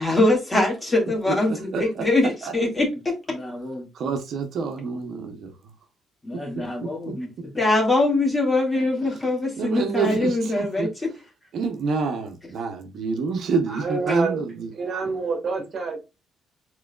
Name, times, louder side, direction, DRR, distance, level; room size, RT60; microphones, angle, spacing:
voice 1, 0.0-3.9 6.2-7.3 7.5-10.9 14.1-14.2, left 2 dB, 20° left, 2.1 m, -23 dB
voice 2, 1.3-2.0 2.4-2.5 3.9-5.5 6.8-7.1 9.6-10.9 11.5-14.7 15.0-15.1, right 4 dB, 65° right, 0.8 m, -28 dB
voice 3, 13.7-14.4 14.7-16.0, right 4 dB, 50° right, 1.5 m, -27 dB
4.7 x 3.8 x 2.3 m
cardioid pair, 90°, 0 cm